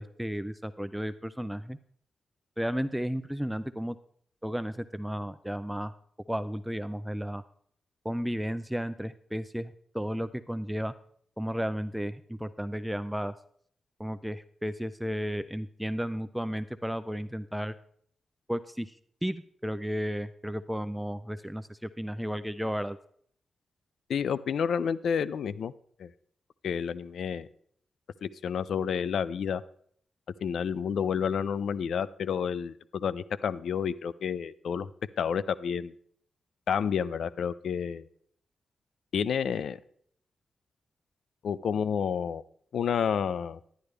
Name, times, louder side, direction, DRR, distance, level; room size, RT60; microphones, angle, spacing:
voice 1, 0.0-1.8 2.6-4.0 4.4-5.9 6.3-7.4 8.0-10.9 11.4-13.3 14.0-17.7 18.5-18.9 19.2-23.0, equal, 5° right, 12 dB, 0.4 m, -33 dB
voice 2, 24.1-25.7 26.0-26.1 26.6-27.5 28.2-29.6 30.4-34.9 35.2-35.9 36.7-38.1 39.1-39.8 41.4-42.4 42.7-43.6, left 7 dB, 85° left, 17 dB, 0.3 m, -30 dB
11.0 x 10.5 x 3.3 m, 0.62 s
cardioid pair, 70°, 0 cm